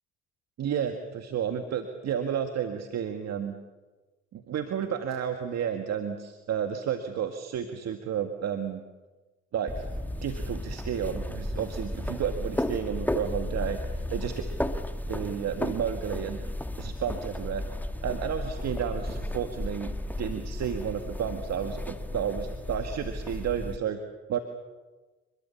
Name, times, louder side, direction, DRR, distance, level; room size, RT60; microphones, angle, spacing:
voice 1, 0.6-3.6 4.3-8.8 9.5-9.9 10.2-14.4 15.1-16.4 16.8-17.6 18.0-19.9 20.2-24.0 24.3-24.4, right 8 dB, 60° right, 6 dB, 2.0 m, -31 dB
sound 1, 9.7-23.8, left 1 dB, 5° left, 1.9 m, -34 dB
27.0 x 22.0 x 7.3 m, 1.2 s
hypercardioid pair, 55°, 30 cm